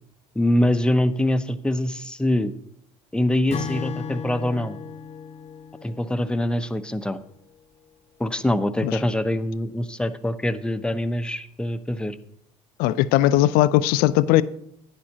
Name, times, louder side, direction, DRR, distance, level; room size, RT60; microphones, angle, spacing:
voice 1, 0.4-2.5 3.1-4.8 5.8-7.2 8.2-12.2, left 1 dB, 5° left, 0.7 m, -24 dB
Acoustic guitar / Strum, 3.5-6.9, left 7 dB, 40° left, 0.8 m, -35 dB
voice 2, 12.8-14.4, left 14 dB, 70° left, 0.5 m, -19 dB
11.5 x 9.7 x 2.9 m
hypercardioid pair, 70°, 16 cm